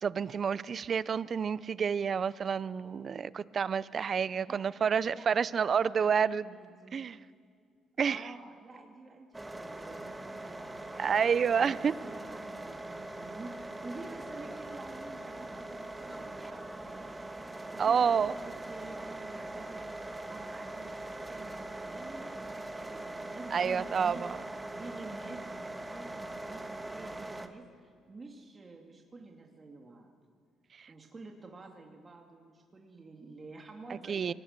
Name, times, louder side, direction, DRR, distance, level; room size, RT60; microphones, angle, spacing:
voice 1, 0.0-6.5 6.9-7.2 8.0-8.2 11.0-11.9 17.8-18.3 23.5-24.4 30.8-30.9 34.1-34.3, right 6 dB, 50° right, 18 dB, 0.7 m, -29 dB
voice 2, 4.3-4.7 5.1-7.0 8.0-17.3 17.7-24.2 24.7-30.1 30.9-34.3, right 3 dB, 35° right, 1 dB, 2.7 m, -49 dB
sound 1, 9.3-27.5, right 2 dB, 15° right, 2.0 m, -42 dB
25.0 x 19.0 x 6.8 m, 2.2 s
supercardioid pair, 70°, 0 cm